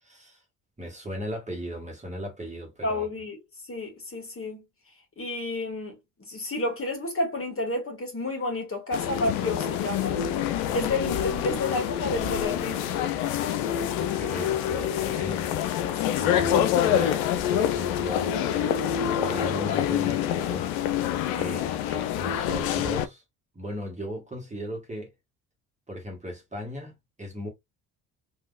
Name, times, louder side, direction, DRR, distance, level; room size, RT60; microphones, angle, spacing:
voice 1, 0.0-0.4 0.8-3.1 10.7-10.8 14.0-15.5 16.1-18.3 19.2-20.7 21.4-23.2 23.5-25.1 25.9-27.5, equal, 15° right, 1.6 m, -37 dB
voice 2, 2.8-4.6 5.2-10.2 10.5-13.1 15.8-16.5 21.3-21.7, left 2 dB, 30° left, 1.6 m, -31 dB
sound 1, 8.9-23.1, left 10 dB, 80° left, 0.6 m, -26 dB
3.6 x 2.8 x 2.4 m
hypercardioid pair, 55°, 44 cm